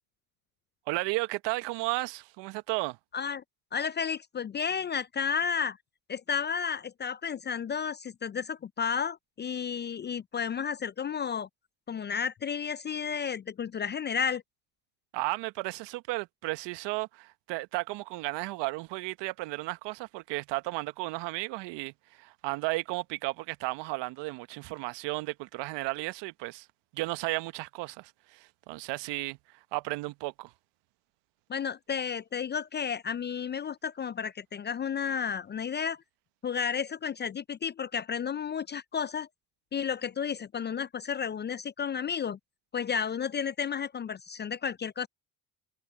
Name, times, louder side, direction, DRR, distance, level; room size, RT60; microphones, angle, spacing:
voice 1, 0.9-3.0 15.1-26.7 26.9-29.4 29.7-30.5, right 22 dB, 65° right, 1.2 m, -34 dB
voice 2, 3.1-3.4 3.7-5.8 6.1-11.5 11.9-14.4 31.5-36.0 36.4-39.3 39.7-42.4 42.7-45.1, left 7 dB, 25° left, 0.4 m, -32 dB
hypercardioid pair, 70°, 45 cm